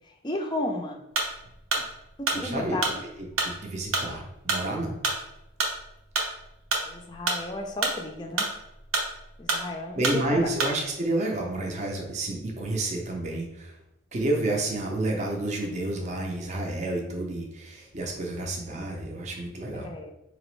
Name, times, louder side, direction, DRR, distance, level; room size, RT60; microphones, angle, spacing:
voice 1, 0.2-1.0 2.2-2.9 6.8-8.5 9.4-10.5 19.7-20.1, left 2 dB, 20° left, 2 dB, 0.4 m, -33 dB
sound 1, 1.2-10.9, right 3 dB, 80° right, 0.8 m, -29 dB
voice 2, 2.3-3.1 3.4-4.9 9.9-13.7 14.1-19.9, right 2 dB, 35° right, 0 dB, 0.6 m, -30 dB
4.2 x 2.9 x 3.1 m, 0.88 s
head